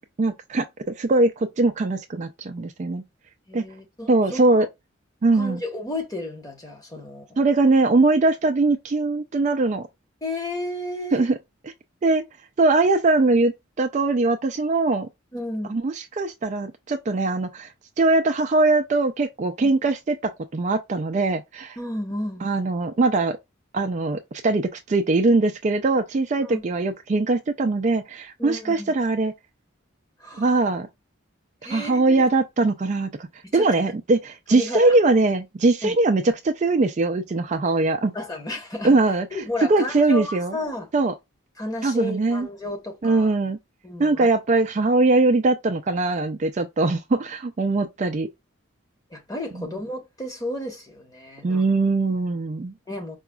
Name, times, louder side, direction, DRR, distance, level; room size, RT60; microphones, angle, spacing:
voice 1, 0.2-3.0 3.5-3.7 4.1-4.7 5.2-5.6 7.4-9.9 11.1-11.4 12.0-12.2 12.6-15.1 15.7-17.7 18.0-21.8 22.4-23.4 23.7-29.3 30.4-30.9 31.7-33.3 33.5-38.1 38.8-39.3 39.7-40.5 40.9-41.1 41.8-42.5 43.0-43.6 44.0-48.3 49.5-49.7 51.4-52.7, right 3 dB, 35° right, 0.3 m, -21 dB
voice 2, 3.5-4.6 5.3-7.4 10.2-11.3 15.3-15.8 19.6-19.7 21.8-22.5 26.4-26.6 28.4-28.9 30.2-30.5 31.6-32.2 33.4-33.7 34.5-35.0 35.8-35.9 38.1-39.0 39.3-40.9 41.6-43.3 43.8-44.3 49.1-51.7 52.9-53.2, left 1 dB, 15° left, 1.0 m, -32 dB
4.8 x 2.3 x 2.2 m
head